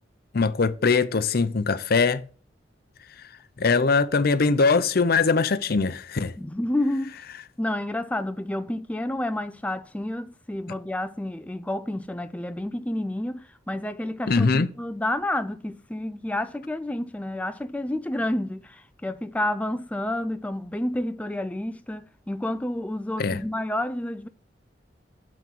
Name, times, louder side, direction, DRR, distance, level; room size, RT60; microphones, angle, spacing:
voice 1, 0.3-2.2 3.6-6.3 14.3-14.7 23.2-23.4, left 4 dB, 55° left, 0.6 m, -21 dB
voice 2, 6.4-7.2 7.6-24.3, left 1 dB, 10° left, 0.4 m, -30 dB
7.1 x 6.0 x 7.0 m
head